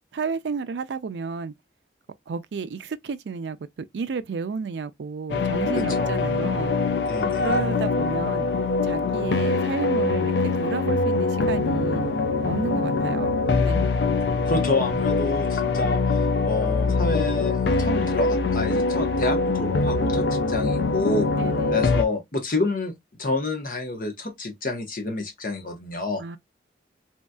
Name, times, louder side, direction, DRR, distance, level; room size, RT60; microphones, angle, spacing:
voice 1, 0.1-1.5 2.3-6.7 7.4-8.5 8.8-10.3 10.6-12.1 12.4-13.4 13.6-13.9 21.3-21.8 26.2-26.4, right 5 dB, 75° right, 0.4 m, -31 dB
sound 1, 5.3-22.0, left 3 dB, 75° left, 0.4 m, -23 dB
voice 2, 5.8-6.2 7.0-7.6 14.5-26.2, left 2 dB, 50° left, 0.9 m, -29 dB
3.0 x 2.7 x 2.2 m
head